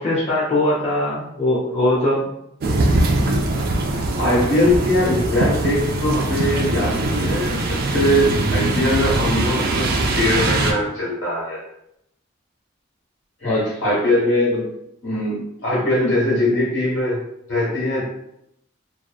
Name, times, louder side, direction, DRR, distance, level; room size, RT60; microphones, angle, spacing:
voice 1, 0.0-2.3 13.4-13.9, left 1 dB, 35° left, -7 dB, 0.5 m, -21 dB
sound 1, 2.6-10.7, right 2 dB, 50° right, 0.3 m, -21 dB
voice 2, 4.2-11.6 13.4-14.7 15.0-17.2 17.5-18.0, left 1 dB, 70° left, -6 dB, 1.4 m, -21 dB
2.7 x 2.1 x 2.3 m, 0.79 s
head